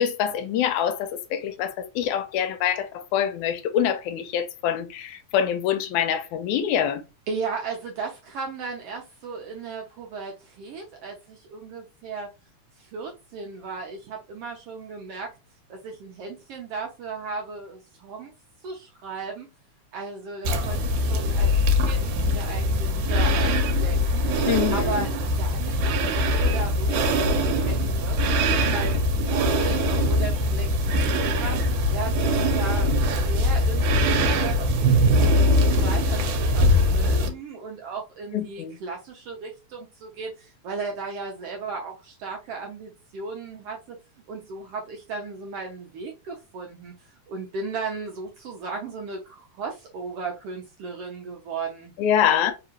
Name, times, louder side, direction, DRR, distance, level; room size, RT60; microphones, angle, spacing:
voice 1, 0.0-7.0 24.5-25.1 38.3-38.8 52.0-52.5, left 9 dB, 85° left, 2.0 m, -25 dB
voice 2, 7.3-12.3 12.7-15.3 15.7-18.3 18.6-19.5 19.9-24.3 24.7-25.8 26.2-30.7 31.1-44.0 44.3-51.9, right 4 dB, 75° right, 1.4 m, -36 dB
sound 1, 20.4-37.3, equal, 90° right, 2.3 m, -22 dB
4.7 x 2.9 x 2.9 m
omnidirectional pair, 3.4 m